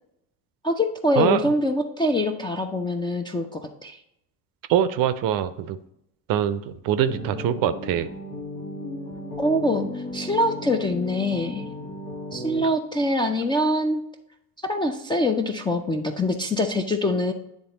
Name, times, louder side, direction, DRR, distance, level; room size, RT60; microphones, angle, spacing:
voice 1, 0.6-4.0 9.4-11.6 12.3-14.0 14.7-17.3, left 1 dB, 10° left, 4 dB, 0.4 m, -24 dB
voice 2, 4.7-5.8 6.3-8.1, right 10 dB, 45° right, 12 dB, 0.6 m, -23 dB
sound 1, 7.1-12.6, left 1 dB, 70° left, 1.5 m, -35 dB
9.5 x 3.5 x 3.9 m, 0.78 s
figure-of-eight pair, 60°, 50 cm